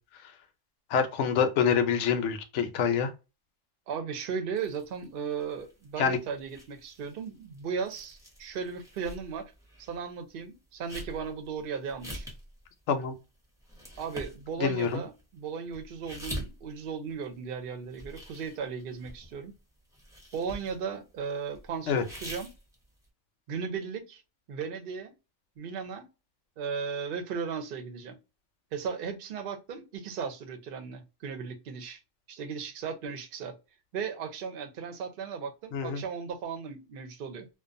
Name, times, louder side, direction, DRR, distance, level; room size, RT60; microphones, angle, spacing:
voice 1, 0.9-3.1 6.0-6.2 12.9-13.1 14.6-15.0 21.9-22.0 35.7-36.0, left 7 dB, 75° left, 0.9 m, -26 dB
voice 2, 3.9-9.5 9.8-12.3 14.0-19.6 20.3-22.5 23.5-24.2 24.5-25.1 25.6-26.1 26.6-28.2 28.7-32.0 32.3-33.6 33.9-37.5, right 6 dB, 55° right, 0.7 m, -36 dB
sound 1, 4.6-10.0 10.3-17.6 17.8-19.6 19.9-21.1 21.5-23.1, equal, 5° right, 0.7 m, -45 dB
2.4 x 2.2 x 2.4 m
omnidirectional pair, 1.3 m